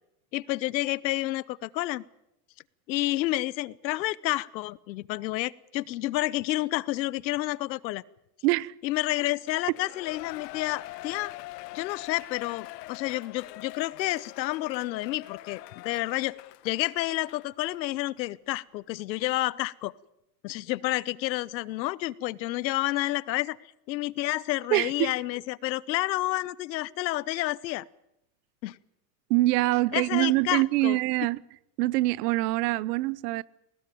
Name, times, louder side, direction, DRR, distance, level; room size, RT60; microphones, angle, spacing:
voice 1, 0.3-2.0 2.9-8.0 8.8-11.3 11.7-16.3 16.6-19.9 20.4-23.6 23.9-27.8 28.6-28.8 29.9-31.0, left 17 dB, 90° left, 1.0 m, -30 dB
voice 2, 8.4-8.7 24.7-25.1 29.3-31.4 31.8-33.4, right 19 dB, 65° right, 0.9 m, -24 dB
Shout / Cheering, 9.4-17.8 18.2-18.3, left 18 dB, 70° left, 1.2 m, -44 dB
21.0 x 18.0 x 9.2 m
supercardioid pair, 135°, 50 cm